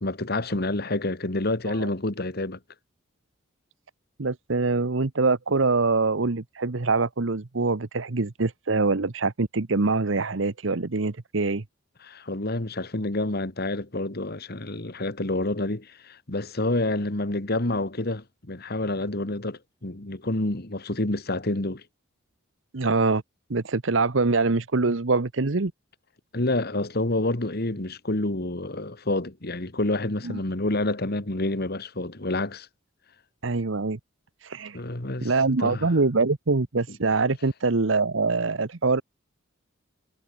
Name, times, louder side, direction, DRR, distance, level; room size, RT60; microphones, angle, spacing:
voice 1, 0.0-2.6 12.0-21.8 26.3-32.7 34.7-35.3 35.6-35.9, left 2 dB, 50° left, 2.0 m, -28 dB
voice 2, 4.2-11.6 22.7-23.2 23.5-25.7 30.2-30.4 33.4-34.0 34.4-34.8 35.2-39.0, right 3 dB, 70° right, 1.0 m, -24 dB
head